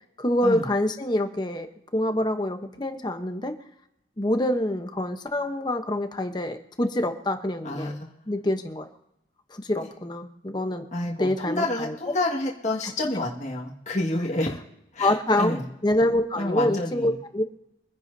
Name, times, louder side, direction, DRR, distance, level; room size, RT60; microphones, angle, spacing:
voice 1, 0.2-1.7 1.9-3.5 4.2-7.9 8.3-8.9 9.5-10.8 11.2-11.9 12.8-12.9 14.2-14.3 15.0-15.6 15.8-17.4, left 1 dB, 25° left, 6 dB, 0.9 m, -26 dB
voice 2, 7.6-8.1 10.9-14.6 14.9-15.6 16.4-17.1, left 2 dB, 40° left, -3 dB, 1.9 m, -29 dB
24.5 x 10.5 x 2.8 m, 0.83 s
head